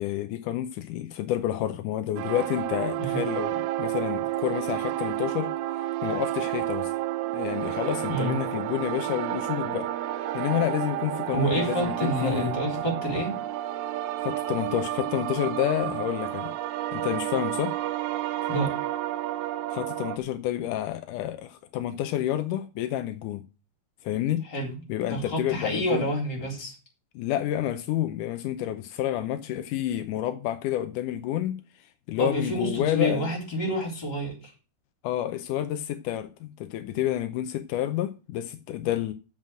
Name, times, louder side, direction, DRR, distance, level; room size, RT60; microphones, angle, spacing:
voice 1, 0.0-5.5 6.0-6.9 7.3-9.9 10.3-12.5 14.2-16.5 16.9-17.8 19.7-23.4 24.0-24.4 24.9-26.1 27.2-31.6 32.1-33.3 35.0-39.1, left 12 dB, 85° left, 2.2 m, -29 dB
sound 1, 2.2-20.2, right 14 dB, 75° right, 1.9 m, -30 dB
voice 2, 11.3-13.4 18.5-18.7 24.4-26.7 32.2-34.5, equal, 30° left, 4.2 m, -28 dB
7.5 x 6.0 x 7.5 m
omnidirectional pair, 3.6 m